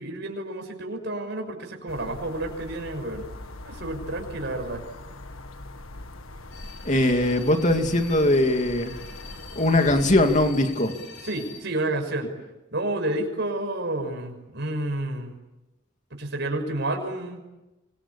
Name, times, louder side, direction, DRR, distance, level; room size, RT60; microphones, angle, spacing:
voice 1, 0.0-3.3 3.6-4.8 11.2-12.3 12.7-15.3 16.1-17.4, right 1 dB, 55° right, 3 dB, 6.1 m, -30 dB
sound 1, 1.9-10.5, left 2 dB, 75° left, 1.8 m, -41 dB
sound 2, 6.5-11.6, left 6 dB, 60° left, 6.3 m, -44 dB
voice 2, 6.8-8.9 9.6-10.9, left 1 dB, 35° left, 5 dB, 2.7 m, -21 dB
27.5 x 25.0 x 8.6 m, 1.0 s
head